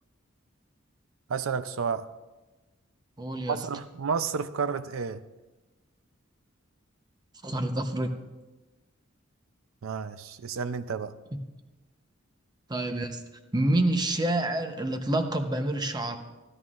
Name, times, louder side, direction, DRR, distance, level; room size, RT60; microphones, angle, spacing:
voice 1, 1.3-2.1 3.5-5.2 9.8-11.1, right 6 dB, 85° right, 13 dB, 0.5 m, -31 dB
voice 2, 3.2-3.6 7.4-8.2 12.7-13.2 13.5-16.2, right 1 dB, 20° right, 6 dB, 0.8 m, -27 dB
15.5 x 11.0 x 2.5 m, 1.1 s
head